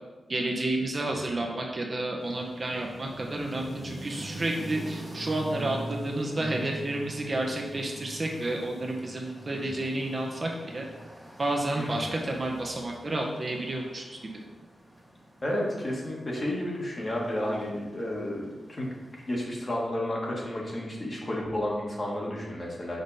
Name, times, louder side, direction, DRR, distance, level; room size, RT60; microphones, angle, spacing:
voice 1, 0.3-10.8 11.4-14.2, right 1 dB, 35° right, 0 dB, 0.8 m, -30 dB
sound 1, 2.2-19.3, right 1 dB, ahead, 1.5 m, -44 dB
voice 2, 15.4-23.0, left 1 dB, 30° left, -2 dB, 1.4 m, -32 dB
6.0 x 5.2 x 4.1 m, 1.2 s
wide cardioid pair, 145°, 0 cm